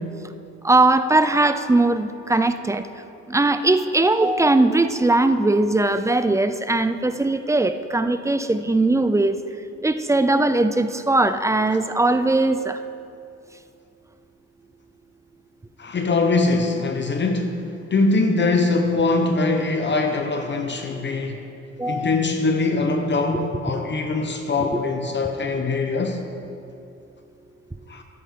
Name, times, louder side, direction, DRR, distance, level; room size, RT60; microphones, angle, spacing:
voice 1, 0.6-2.9 3.3-9.4 9.8-12.8 20.9-21.2 21.8-22.2 24.7-24.8, right 2 dB, 10° right, 10 dB, 0.4 m, -20 dB
voice 2, 15.8-17.6 17.9-21.4 21.9-26.2 27.9-28.0, left 3 dB, 35° left, 5 dB, 1.0 m, -22 dB
13.0 x 9.1 x 3.7 m, 2.6 s
cardioid pair, 90°, 30 cm